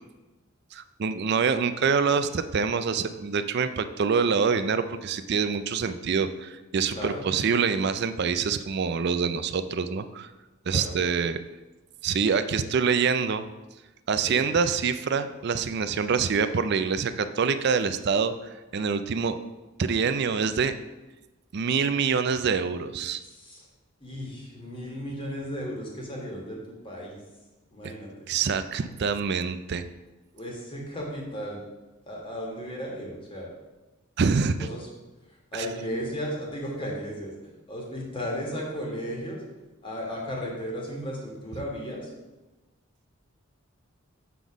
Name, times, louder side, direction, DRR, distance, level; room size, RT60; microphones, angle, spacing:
voice 1, 0.7-10.3 10.7-11.4 12.0-13.5 14.1-18.3 18.7-19.4 19.8-20.7 21.5-23.2 27.8-27.9 28.3-29.8 34.2-34.6 35.5-35.7, right 5 dB, 50° right, 11 dB, 0.4 m, -25 dB
voice 2, 6.9-7.3 10.7-11.0 14.3-14.5 23.2-23.7 24.0-27.2 27.7-28.3 30.3-31.6 32.1-33.5 34.4-34.9 35.3-39.4 39.8-42.1, equal, 25° left, -2 dB, 1.6 m, -35 dB
6.9 x 4.0 x 6.1 m, 1.1 s
head